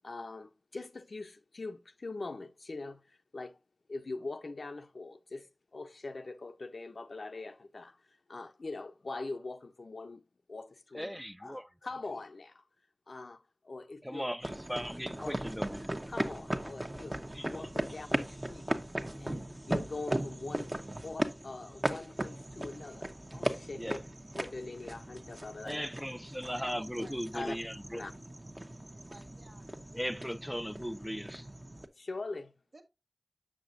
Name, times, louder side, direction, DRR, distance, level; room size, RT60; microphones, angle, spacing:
voice 1, 0.0-3.6 3.9-10.2 10.5-11.1 11.4-12.6 13.1-14.3 15.2-15.4 16.1-18.7 19.2-20.7 21.0-24.0 24.4-25.8 27.0-27.1 27.3-27.6 27.9-28.1 32.0-32.5, left 3 dB, 85° left, 0.6 m, -43 dB
voice 2, 10.9-11.7 14.0-15.9 17.3-17.5 23.8-24.0 25.7-28.0 29.9-31.5, equal, ahead, 0.4 m, -38 dB
sound 1, 14.4-31.9, right 1 dB, 30° right, 0.9 m, -38 dB
voice 3, 26.1-27.5 28.9-29.7 32.7-32.8, right 2 dB, 75° right, 1.3 m, -54 dB
7.6 x 6.5 x 2.6 m
wide cardioid pair, 45°, 0 cm